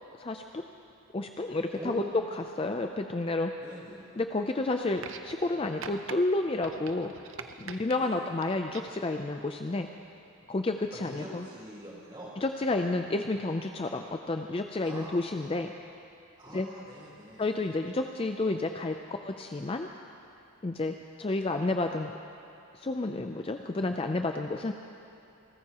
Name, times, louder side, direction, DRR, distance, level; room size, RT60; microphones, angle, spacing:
voice 1, 0.2-0.6 1.1-2.0 2.4-3.5 4.2-7.1 7.6-9.9 10.5-11.4 12.4-15.7 16.5-16.7 17.4-19.9 20.6-22.1 22.8-24.7, left 2 dB, 25° left, 5 dB, 0.4 m, -30 dB
voice 2, 1.7-2.2 3.6-4.1 7.9-8.3 10.9-12.3 14.8-15.1 16.4-17.6, right 1 dB, 20° right, -6 dB, 3.7 m, -44 dB
sound 1, 5.0-5.5 5.8-6.2 6.6-8.0 8.4-9.0 10.1-10.2, right 6 dB, 60° right, 0.7 m, -43 dB
28.5 x 14.0 x 2.9 m, 2.7 s
head